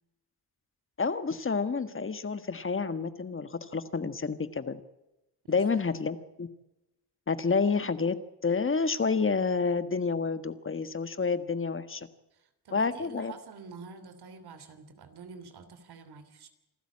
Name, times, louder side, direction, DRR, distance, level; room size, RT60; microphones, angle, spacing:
voice 1, 1.0-4.8 5.5-6.5 7.3-8.2 8.4-12.1 12.7-13.3, left 4 dB, 30° left, 12 dB, 1.5 m, -29 dB
voice 2, 5.4-5.9 12.3-16.5, right 4 dB, 70° right, 10 dB, 3.3 m, -48 dB
27.5 x 12.5 x 8.6 m, 0.95 s
cardioid pair, 100°, 40 cm